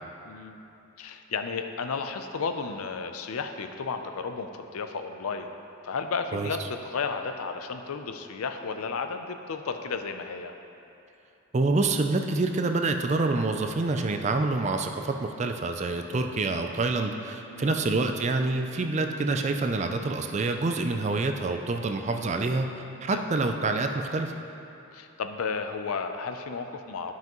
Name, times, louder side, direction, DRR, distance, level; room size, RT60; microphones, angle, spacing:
voice 1, 0.2-0.6 1.0-5.5 5.8-10.5 17.5-17.7 23.1-23.2 24.9-27.1, left 5 dB, 90° left, 7 dB, 0.5 m, -33 dB
voice 2, 11.5-22.7 23.0-24.3, right 3 dB, 30° right, 5 dB, 0.3 m, -27 dB
11.5 x 5.7 x 3.0 m, 2.9 s
head